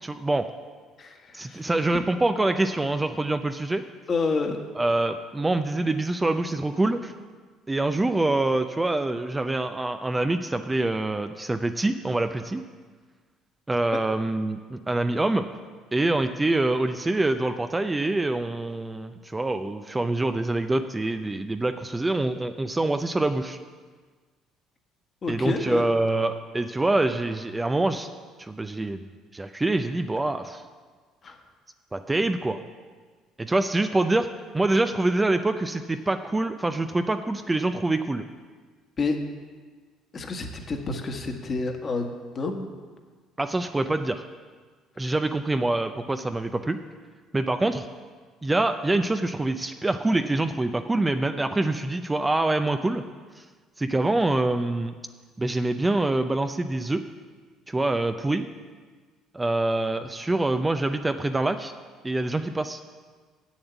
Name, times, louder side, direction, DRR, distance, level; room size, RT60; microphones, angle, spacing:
voice 1, 0.0-0.5 1.3-3.8 4.8-7.1 7.7-12.6 13.7-15.5 15.9-23.6 25.3-28.1 28.4-29.0 29.3-30.6 31.9-32.6 33.4-34.3 34.5-38.3 43.4-44.2 45.0-46.8 47.3-47.9 48.4-53.0 53.4-53.5 53.8-54.9 55.4-57.0 57.7-58.5 59.3-61.7 62.0-62.8, right 2 dB, 15° right, 8 dB, 0.5 m, -25 dB
voice 2, 1.0-1.6 1.9-2.0 4.1-4.6 13.9-14.0 25.2-26.0 31.2-31.4 39.0-39.2 40.1-42.7, left 3 dB, 40° left, 4 dB, 1.5 m, -29 dB
7.8 x 7.2 x 8.2 m, 1.5 s
supercardioid pair, 70°, 0 cm